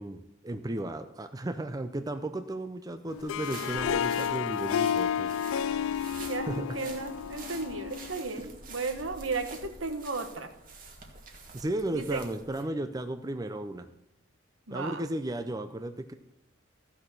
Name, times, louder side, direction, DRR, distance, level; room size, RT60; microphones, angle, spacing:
voice 1, 0.0-5.3 6.5-6.8 8.4-8.5 11.5-13.9 14.7-16.1, right 1 dB, 20° right, 8 dB, 0.5 m, -34 dB
Harp, 3.1-8.3, left 8 dB, 85° left, 0.3 m, -31 dB
sound 1, 3.2-12.6, right 3 dB, 45° right, 1.7 m, -47 dB
voice 2, 6.3-10.5 11.9-12.2 14.7-15.0, right 3 dB, 70° right, 7 dB, 1.3 m, -34 dB
15.0 x 6.2 x 6.3 m, 0.80 s
head